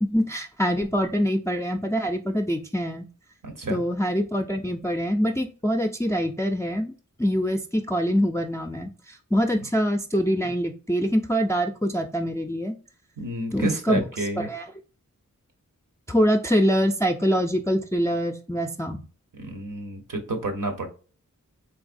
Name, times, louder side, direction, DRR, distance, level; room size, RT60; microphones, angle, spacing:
voice 1, 0.0-3.1 3.7-6.9 7.2-12.7 13.5-14.0 14.4-14.6 16.1-19.0, equal, 10° left, 3 dB, 0.4 m, -24 dB
voice 2, 3.4-3.8 13.2-14.5 19.3-20.9, right 2 dB, 80° right, 5 dB, 1.0 m, -30 dB
4.0 x 3.1 x 2.5 m, 0.37 s
wide cardioid pair, 60°, 32 cm